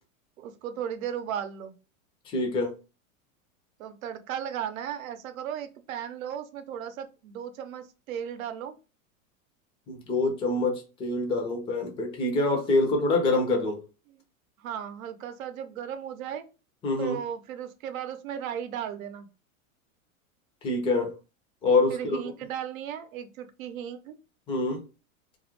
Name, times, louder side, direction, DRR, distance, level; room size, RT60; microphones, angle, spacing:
voice 1, 0.4-1.8 3.8-8.7 14.1-14.2 14.6-16.4 17.0-19.3 21.9-24.2, right 9 dB, 80° right, 0.7 m, -36 dB
voice 2, 2.3-2.7 9.9-13.8 16.8-17.2 20.6-21.1 21.6-22.2 24.5-24.8, left 2 dB, 15° left, 0.4 m, -25 dB
2.4 x 2.0 x 2.9 m
supercardioid pair, 135°, 40 cm